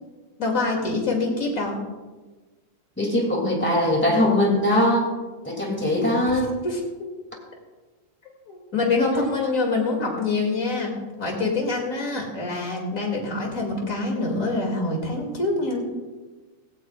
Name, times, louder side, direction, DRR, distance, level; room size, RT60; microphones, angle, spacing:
voice 1, 0.4-1.7 6.6-6.8 8.5-10.9 11.2-15.8, left 3 dB, 30° left, 0 dB, 2.7 m, -25 dB
voice 2, 3.0-5.1 5.4-6.5, left 1 dB, 5° left, 0 dB, 2.1 m, -21 dB
16.5 x 16.5 x 2.5 m, 1.3 s
omnidirectional pair, 3.3 m